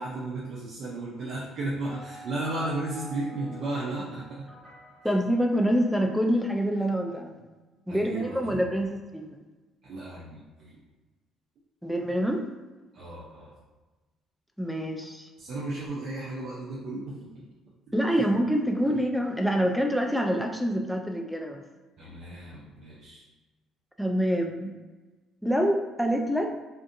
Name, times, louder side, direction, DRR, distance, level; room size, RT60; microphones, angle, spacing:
voice 1, 0.0-4.4 7.9-8.7 9.8-10.8 12.9-13.6 15.4-17.4 18.8-19.0 22.0-23.3, right 2 dB, 60° right, -6 dB, 0.5 m, -34 dB
sound 1, 1.8-6.1, right 1 dB, 15° right, 1.3 m, -47 dB
voice 2, 5.0-7.4 7.9-9.4 11.8-12.4 14.6-15.3 17.9-21.6 22.1-22.2 24.0-24.7 25.4-26.5, equal, ahead, 2 dB, 0.3 m, -26 dB
2.6 x 2.5 x 2.5 m, 1.2 s
cardioid pair, 105°, 0 cm